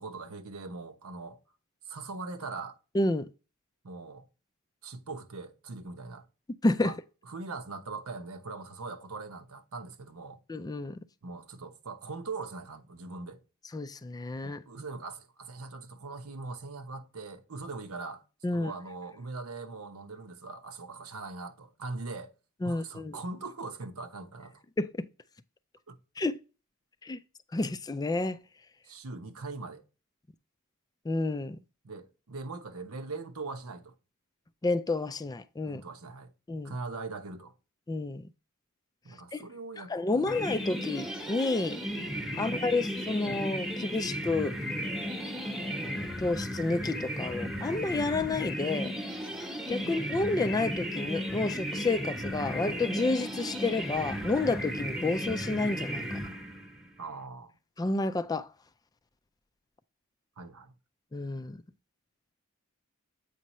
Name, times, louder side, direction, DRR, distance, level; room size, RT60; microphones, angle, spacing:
voice 1, 0.0-1.4 1.9-2.8 3.8-4.3 4.8-6.2 6.8-7.0 7.2-10.4 11.2-13.4 14.4-18.2 18.5-22.3 22.6-24.6 25.9-26.0 28.8-29.8 31.8-33.9 35.6-36.3 36.6-37.5 39.0-40.3 42.3-42.6 49.8-49.9 57.0-57.6 60.4-60.7, right 3 dB, 90° right, 1.0 m, -41 dB
voice 2, 2.9-3.3 6.6-6.9 10.5-11.0 13.7-14.6 18.4-18.7 22.6-23.2 24.8-25.1 26.2-26.4 27.0-27.2 27.5-28.4 31.1-31.6 34.6-35.8 36.5-36.7 37.9-38.3 39.3-39.5 39.8-41.8 42.4-44.6 45.4-48.9 49.7-56.3 57.8-58.5 61.1-61.6, left 2 dB, 20° left, 0.3 m, -30 dB
sound 1, 40.3-56.9, equal, ahead, 1.0 m, -35 dB
8.4 x 5.3 x 3.0 m
head